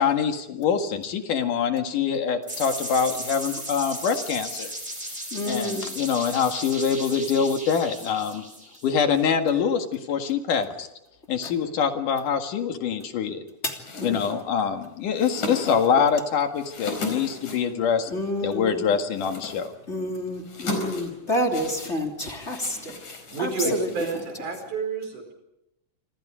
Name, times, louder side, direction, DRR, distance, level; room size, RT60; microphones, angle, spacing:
voice 1, 0.0-4.7 5.5-8.4 8.8-10.9 11.3-13.4 14.0-18.1 18.4-19.7 23.6-23.7, left 6 dB, 85° left, 5 dB, 3.5 m, -24 dB
sound 1, 2.5-9.2, right 1 dB, 10° right, 5.4 m, -36 dB
voice 2, 5.3-5.9 11.4-11.5 13.6-14.2 18.1-18.9 19.9-23.0 23.4-23.9, equal, 20° left, 2 dB, 3.2 m, -29 dB
sound 2, 13.8-24.7, left 2 dB, 70° left, 5.8 m, -38 dB
voice 3, 23.3-25.3, right 5 dB, 75° right, 6 dB, 6.3 m, -30 dB
27.5 x 26.5 x 5.1 m, 0.85 s
omnidirectional pair, 3.6 m